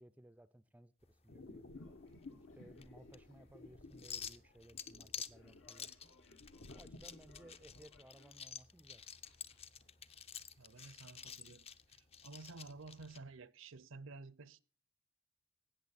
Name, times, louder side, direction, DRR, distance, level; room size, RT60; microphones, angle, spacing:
voice 1, 0.0-2.0 2.5-6.1 6.7-9.0, right 1 dB, 10° right, 0.5 m, -60 dB
sound 1, 1.0-13.2, left 7 dB, 30° left, 0.7 m, -51 dB
sound 2, 1.3-8.0, left 2 dB, 65° left, 1.2 m, -56 dB
sound 3, 1.6-13.0, left 3 dB, 90° left, 2.8 m, -73 dB
voice 2, 10.6-14.6, right 3 dB, 75° right, 0.7 m, -53 dB
17.0 x 6.7 x 4.1 m
head